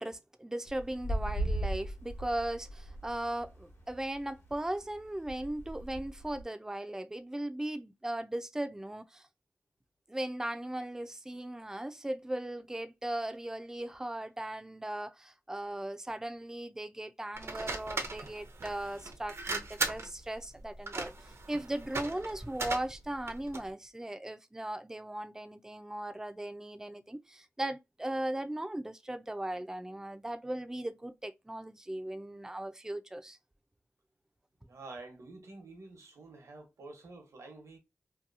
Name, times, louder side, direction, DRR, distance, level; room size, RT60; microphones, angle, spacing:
voice 1, 0.0-9.3 10.1-21.1 21.5-33.4, right 1 dB, 10° right, 0.4 m, -38 dB
sound 1, 0.7-6.4, right 1 dB, 65° left, 1.0 m, -37 dB
sound 2, 17.3-23.7, right 3 dB, 65° right, 0.6 m, -38 dB
voice 2, 34.7-37.8, right 3 dB, 80° right, 1.0 m, -49 dB
2.8 x 2.2 x 2.5 m
cardioid pair, 55°, 5 cm